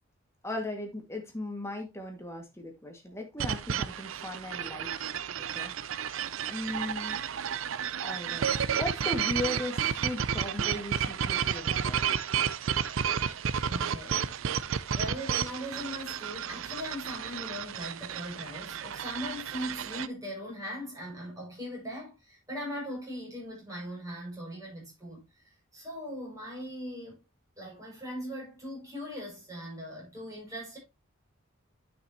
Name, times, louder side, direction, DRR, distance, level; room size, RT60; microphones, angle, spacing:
voice 1, 0.4-5.1 5.5-5.7 6.5-7.2 8.0-8.5 8.8-12.0, left 1 dB, 15° left, 1.9 m, -37 dB
sound 1, 3.4-20.1, right 8 dB, 80° right, 0.5 m, -32 dB
voice 2, 13.6-25.2 25.7-27.2 27.6-30.8, equal, 15° right, 6.1 m, -40 dB
10.0 x 6.1 x 2.9 m
head